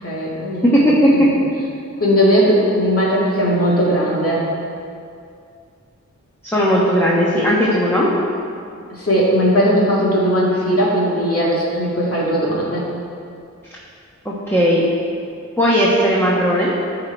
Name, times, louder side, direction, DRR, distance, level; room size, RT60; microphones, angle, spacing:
voice 1, 0.0-0.8 1.1-1.4 2.0-4.5 8.9-12.9, equal, 50° left, -5 dB, 2.2 m, -18 dB
voice 2, 0.7-1.1 6.4-8.1 14.2-14.8 15.6-16.7, equal, 10° left, -6 dB, 1.3 m, -16 dB
13.0 x 4.9 x 4.5 m, 2.4 s
wide cardioid pair, 100°, 30 cm